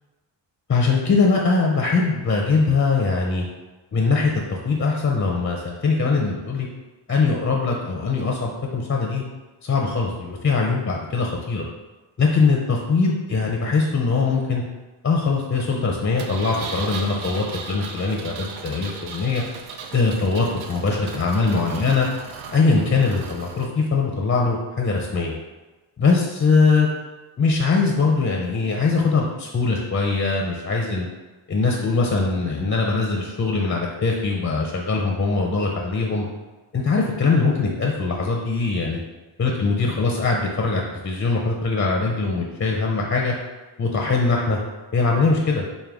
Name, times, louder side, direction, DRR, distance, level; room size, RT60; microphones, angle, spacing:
voice 1, 0.7-3.5 3.9-6.7 7.1-9.2 9.6-11.6 12.2-14.6 15.0-19.4 19.9-22.1 22.5-25.3 26.0-26.9 27.4-31.1 31.5-36.3 36.7-39.0 39.4-43.3 43.8-44.6 44.9-45.7, left 4 dB, 30° left, -1 dB, 0.4 m, -21 dB
Engine, 16.2-23.7, right 5 dB, 80° right, 0.5 m, -37 dB
4.6 x 2.2 x 3.4 m, 1.2 s
wide cardioid pair, 105°, 47 cm